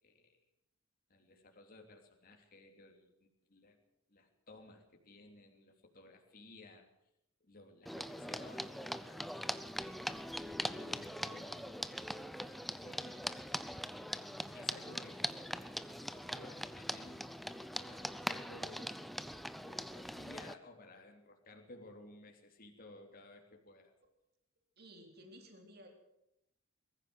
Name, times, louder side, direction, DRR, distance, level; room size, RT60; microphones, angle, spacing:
voice 1, 0.0-0.4 1.1-3.8 4.1-6.8 7.4-9.3 9.6-10.2 10.6-12.0 12.8-13.5 14.5-15.6 15.8-17.3 17.7-23.9, left 2 dB, 45° left, 2 dB, 3.2 m, -57 dB
sound 1, 7.9-20.5, equal, ahead, 0.7 m, -42 dB
voice 2, 16.1-16.4 24.8-25.9, equal, 50° right, 3 dB, 4.0 m, -56 dB
22.0 x 14.5 x 8.1 m, 0.82 s
head